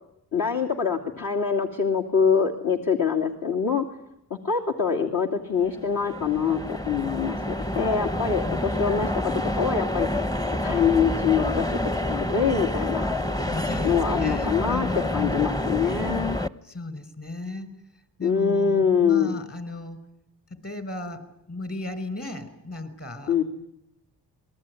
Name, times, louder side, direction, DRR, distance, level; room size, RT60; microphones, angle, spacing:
voice 1, 0.3-3.9 4.3-9.1 9.6-10.1 10.6-11.8 12.1-13.1 13.8-16.4 18.2-19.4 23.3-23.4, left 6 dB, 60° left, 0 dB, 2.7 m, -24 dB
sound 1, 5.6-16.5, left 1 dB, 10° left, 1.0 m, -28 dB
voice 2, 8.4-8.9 13.4-15.6 16.6-17.7 18.2-20.0 20.5-21.2 21.5-23.4, left 2 dB, 40° left, 13 dB, 5.5 m, -35 dB
28.0 x 21.0 x 9.9 m, 0.83 s
cardioid pair, 75°, 39 cm